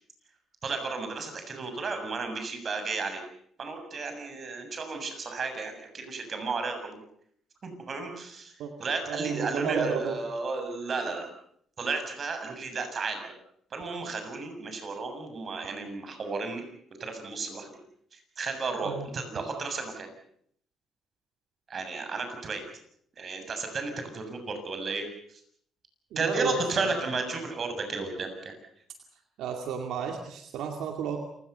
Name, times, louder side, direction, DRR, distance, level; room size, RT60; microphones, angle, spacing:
voice 1, 0.6-3.2 3.6-7.0 7.6-8.5 8.8-11.3 11.8-13.3 13.7-16.6 17.0-17.8 18.4-20.1 21.7-22.6 23.2-25.0 26.2-28.6, right 4 dB, 45° right, 6 dB, 7.1 m, -33 dB
voice 2, 9.1-10.2 18.8-19.1 26.1-27.0 29.4-31.2, right 7 dB, 85° right, 4 dB, 2.4 m, -33 dB
28.5 x 18.5 x 6.9 m, 0.67 s
cardioid pair, 90°, 0 cm